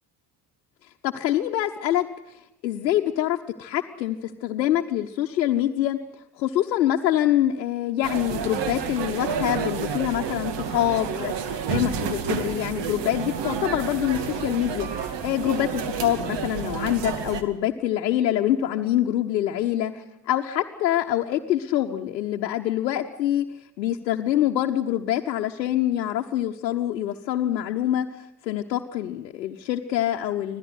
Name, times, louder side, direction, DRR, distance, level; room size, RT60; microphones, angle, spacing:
voice 1, 1.0-6.0 6.4-23.5 23.8-28.1 28.4-30.6, left 12 dB, 85° left, 2 dB, 1.0 m, -25 dB
sound 1, 8.0-17.4, right 6 dB, 55° right, 2.3 m, -30 dB
25.5 x 16.0 x 8.0 m, 0.91 s
hypercardioid pair, 50°, 49 cm